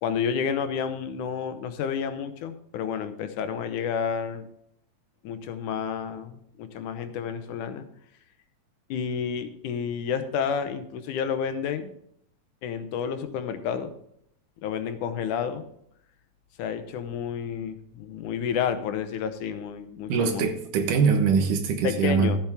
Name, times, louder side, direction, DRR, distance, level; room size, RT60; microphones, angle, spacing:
voice 1, 0.0-4.5 5.2-7.9 8.9-11.9 12.6-13.9 14.6-15.6 16.6-20.4 21.8-22.4, left 7 dB, 80° left, 9 dB, 2.4 m, -30 dB
voice 2, 20.1-22.3, right 5 dB, 85° right, 6 dB, 2.9 m, -23 dB
13.5 x 8.9 x 3.6 m, 0.71 s
omnidirectional pair, 3.6 m